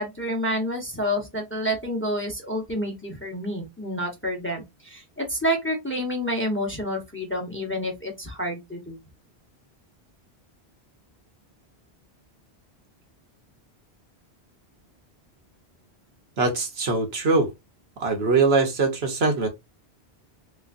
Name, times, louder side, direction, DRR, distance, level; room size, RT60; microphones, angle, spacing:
voice 1, 0.0-9.0, equal, 15° left, 0.8 m, -29 dB
voice 2, 16.4-17.5 18.0-19.5, right 3 dB, 75° right, 1.2 m, -22 dB
3.2 x 3.0 x 2.5 m
omnidirectional pair, 1.1 m